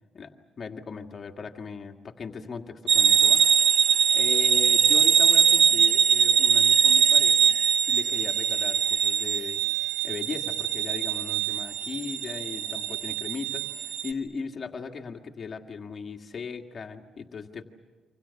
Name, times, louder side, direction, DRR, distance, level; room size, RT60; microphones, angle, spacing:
voice 1, 0.1-3.4 4.1-7.6 7.9-9.6 10.0-13.7 14.0-17.6, left 5 dB, 45° left, 4 dB, 1.9 m, -38 dB
sound 1, 2.9-14.1, right 7 dB, 70° right, 1.6 m, -22 dB
28.0 x 26.0 x 7.0 m, 1.3 s
cardioid pair, 90°, 0 cm